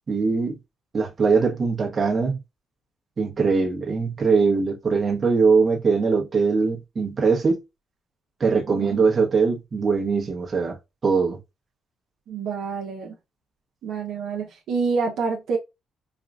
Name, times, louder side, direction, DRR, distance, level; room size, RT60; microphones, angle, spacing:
voice 1, 0.1-0.6 0.9-2.4 3.2-7.6 8.4-10.8 11.0-11.4, right 4 dB, 40° right, 1.2 m, -21 dB
voice 2, 8.7-9.0 12.3-13.2 13.8-15.6, right 5 dB, 75° right, 0.9 m, -27 dB
4.7 x 2.4 x 2.4 m
cardioid pair, 90°, 0 cm